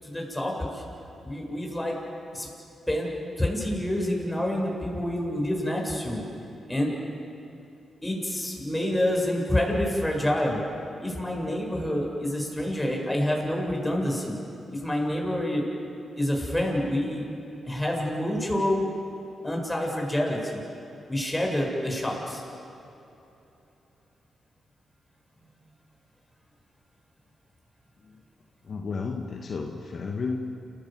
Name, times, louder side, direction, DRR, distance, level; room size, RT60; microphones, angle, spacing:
voice 1, 0.0-0.8 1.2-2.0 2.3-2.5 2.9-3.1 3.4-6.2 6.7-6.9 8.0-10.6 11.0-14.4 14.7-15.6 16.2-17.2 17.7-18.9 19.4-20.6 21.1-22.4, left 1 dB, 10° left, -1 dB, 7.8 m, -27 dB
voice 2, 28.7-30.4, left 4 dB, 60° left, 2 dB, 1.9 m, -32 dB
29.0 x 16.0 x 7.9 m, 3.0 s
supercardioid pair, 45°, 0 cm